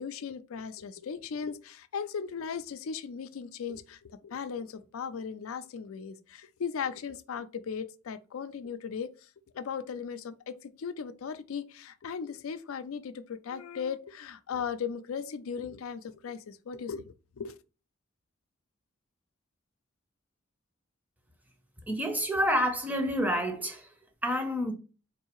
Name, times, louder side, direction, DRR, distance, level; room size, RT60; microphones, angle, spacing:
voice 1, 0.0-9.3 9.5-17.6, left 6 dB, 90° left, 0.4 m, -37 dB
voice 2, 21.9-23.8 24.2-24.7, equal, 10° right, 0.6 m, -28 dB
4.0 x 2.7 x 2.9 m
head